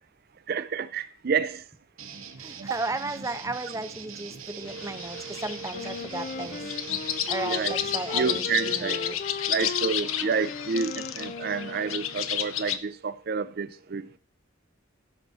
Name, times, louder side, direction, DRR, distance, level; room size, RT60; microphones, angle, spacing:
voice 1, 0.5-1.6 2.7-2.8 4.6-7.7 8.1-9.0 9.5-14.1, right 5 dB, 50° right, 0.5 m, -30 dB
sound 1, 2.0-8.9, right 6 dB, 85° right, 1.3 m, -42 dB
voice 2, 2.4-6.6 7.3-9.2, right 2 dB, 15° right, 0.9 m, -34 dB
sound 2, 4.7-12.8, left 10 dB, 85° left, 0.8 m, -32 dB
Wind instrument woodwind instrument, 5.7-12.4, left 4 dB, 40° left, 0.4 m, -37 dB
16.0 x 6.2 x 4.0 m
head